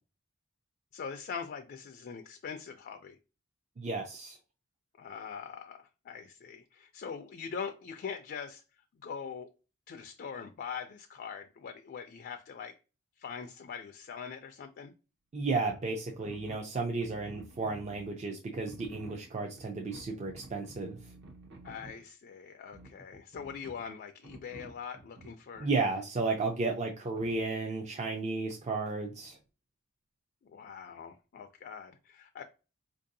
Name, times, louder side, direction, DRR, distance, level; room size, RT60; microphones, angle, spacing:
voice 1, 0.9-3.2 5.0-8.6 9.0-9.5 9.9-12.8 13.2-14.9 21.6-25.7 30.4-32.4, left 6 dB, 45° left, 0.3 m, -42 dB
voice 2, 3.8-4.4 15.3-21.0 25.6-29.4, right 3 dB, 30° right, 0.4 m, -33 dB
sound 1, 15.7-15.8 16.1-18.1 18.5-22.0 22.7-23.9 24.2-25.6 26.2-26.3 27.2-27.4, right 1 dB, 55° right, 0.8 m, -51 dB
4.5 x 2.6 x 2.6 m
head